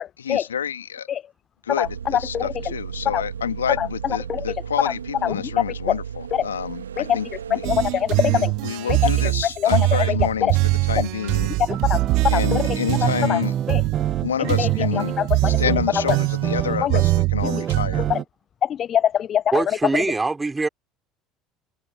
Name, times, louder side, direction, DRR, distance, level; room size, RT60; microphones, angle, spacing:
voice 1, 0.2-1.1 1.6-7.7 8.2-11.5 12.3-13.5 14.2-15.2 15.4-18.0, left 8 dB, 80° left, 2.0 m, -28 dB
sound 1, 1.8-8.6, right 8 dB, 80° right, 1.8 m, -35 dB
voice 2, 7.5-8.5 10.4-10.5 11.8-12.0 12.3-12.6 13.3-13.4 13.7-13.8 14.6-14.7 16.8-17.0 17.5-17.6 18.1-18.2 18.6-19.6, left 10 dB, 40° left, 0.3 m, -22 dB
sound 2, 7.6-18.1, right 23 dB, 60° right, 2.6 m, -23 dB
sound 3, 11.7-18.2, right 9 dB, 40° right, 1.8 m, -28 dB
voice 3, 19.5-20.7, right 3 dB, 15° right, 3.8 m, -23 dB
figure-of-eight pair, 65°, 0 cm